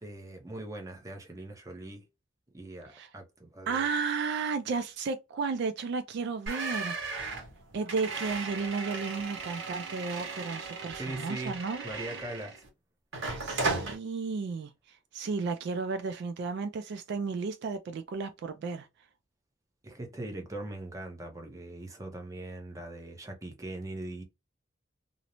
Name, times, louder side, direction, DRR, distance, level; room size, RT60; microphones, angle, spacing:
voice 1, 0.0-2.0 2.5-3.9 11.0-12.6 19.8-24.2, right 2 dB, 15° right, 0.6 m, -41 dB
voice 2, 3.7-7.3 7.7-11.8 13.4-18.9, right 4 dB, 60° right, 0.3 m, -33 dB
sound 1, 6.5-12.7 13.1-14.0, right 3 dB, 80° right, 1.0 m, -36 dB
2.5 x 2.0 x 2.9 m
head